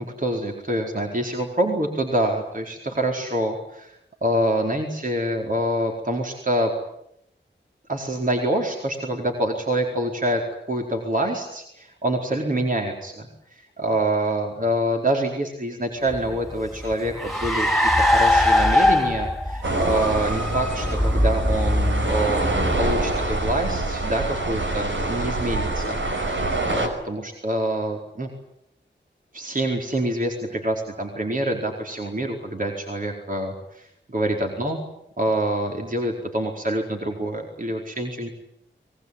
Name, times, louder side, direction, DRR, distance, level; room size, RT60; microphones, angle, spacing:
voice 1, 0.0-3.9 4.2-6.7 7.9-10.4 10.7-28.3 29.3-34.8 35.2-38.3, right 1 dB, 45° right, 1 dB, 4.6 m, -26 dB
Car, 16.1-23.9, left 1 dB, ahead, 3.4 m, -22 dB
sound 1, 19.6-26.9, right 2 dB, 85° right, 5.4 m, -26 dB
25.0 x 21.0 x 9.8 m, 0.78 s
cardioid pair, 50°, 19 cm